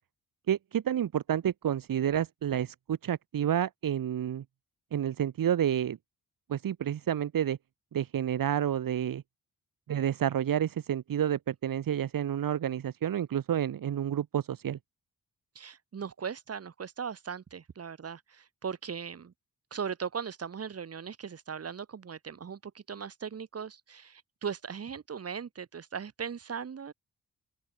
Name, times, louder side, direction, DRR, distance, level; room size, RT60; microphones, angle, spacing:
voice 1, 0.5-4.4 4.9-6.0 6.5-7.6 7.9-9.2 9.9-14.8, right 10 dB, 80° right, 3.8 m, -29 dB
voice 2, 15.6-19.3 19.7-26.9, right 6 dB, 45° right, 7.3 m, -38 dB
open air
wide cardioid pair, 175°, 33 cm